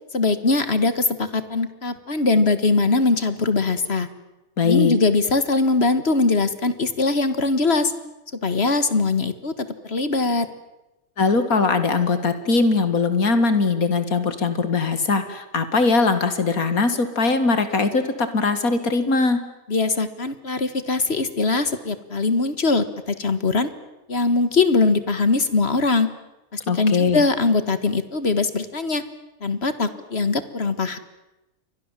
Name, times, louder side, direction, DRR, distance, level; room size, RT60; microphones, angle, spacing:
voice 1, 0.1-4.1 4.6-7.9 8.4-10.5 19.7-23.7 24.1-26.1 26.5-29.0 29.4-31.0, left 3 dB, 45° left, 12 dB, 1.8 m, -21 dB
voice 2, 4.6-5.0 11.2-19.4 26.7-27.2, left 4 dB, 75° left, 10 dB, 2.5 m, -20 dB
29.5 x 24.0 x 7.5 m, 0.99 s
omnidirectional pair, 1.5 m